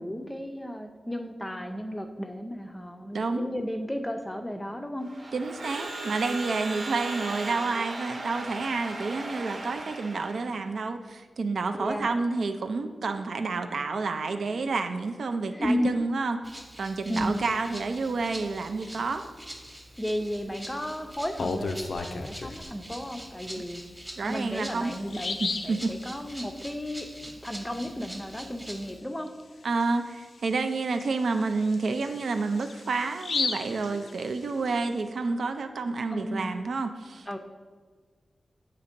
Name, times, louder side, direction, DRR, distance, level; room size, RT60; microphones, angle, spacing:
voice 1, 0.0-5.3 11.7-12.1 15.5-15.9 17.1-17.4 20.0-23.8 24.2-25.4 25.6-29.3 36.1-36.6 37.3-37.4, equal, 10° left, 6 dB, 0.5 m, -33 dB
voice 2, 3.1-3.5 5.3-19.3 23.6-23.7 24.2-24.9 25.4-26.0 29.6-37.4, right 3 dB, 85° right, 7 dB, 0.4 m, -29 dB
Crowd / Alarm, 5.0-10.6, right 2 dB, 70° right, 1.0 m, -37 dB
Rattle (instrument), 16.4-29.0, equal, 5° right, 0.9 m, -44 dB
Bird vocalization bird call bird song, 21.1-22.6 24.1-24.2 24.6-24.7 25.1-25.8 29.3-29.4 29.8-29.9 30.4-34.7, left 4 dB, 80° left, 0.4 m, -34 dB
8.2 x 2.8 x 5.1 m, 1.5 s
wide cardioid pair, 140°, 0 cm